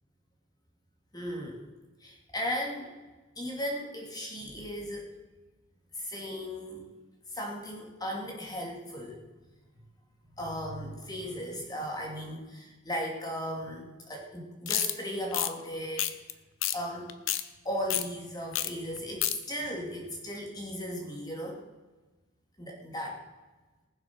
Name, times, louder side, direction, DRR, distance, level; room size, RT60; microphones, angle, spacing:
voice 1, 1.1-1.6 2.0-2.9 3.4-5.2 5.9-6.9 7.3-9.2 10.4-16.2 16.7-17.1 17.6-21.6 22.6-23.2, equal, 20° left, 0 dB, 2.7 m, -36 dB
sound 1, 14.7-14.9 15.3-15.5 16.0-16.3 16.6-16.8 17.1-17.4 17.9-18.0 18.5-18.7 19.0-19.3, left 12 dB, 70° left, 0.8 m, -29 dB
19.5 x 7.5 x 6.3 m, 1.2 s
head